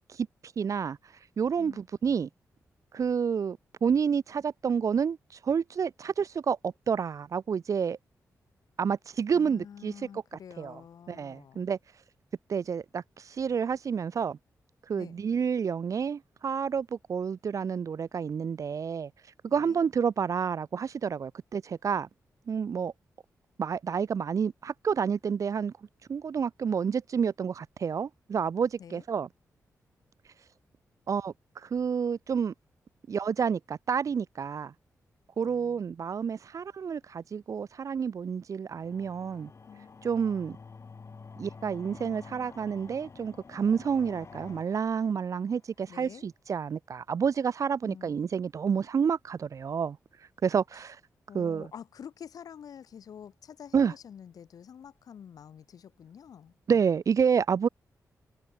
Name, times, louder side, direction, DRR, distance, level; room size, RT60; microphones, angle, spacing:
voice 1, 0.6-1.0 1.4-2.3 2.9-5.2 5.4-8.0 8.8-9.9 10.6-10.8 11.1-11.8 12.5-14.4 14.9-19.1 19.4-22.1 22.5-22.9 23.6-25.7 26.1-29.3 31.1-32.5 33.1-34.7 35.4-39.5 40.0-40.6 41.4-50.0 50.4-51.0 51.3-51.7 53.7-53.9 56.7-57.7, right 6 dB, 60° right, 0.7 m, -29 dB
voice 2, 9.3-11.7 14.9-15.3 19.5-19.8 28.8-29.0 35.4-35.8 39.7-39.9 45.9-46.3 47.8-48.2 51.3-56.6, left 8 dB, 75° left, 4.4 m, -48 dB
sound 1, 38.7-45.7, left 5 dB, 50° left, 5.8 m, -49 dB
cardioid pair, 70°, 6 cm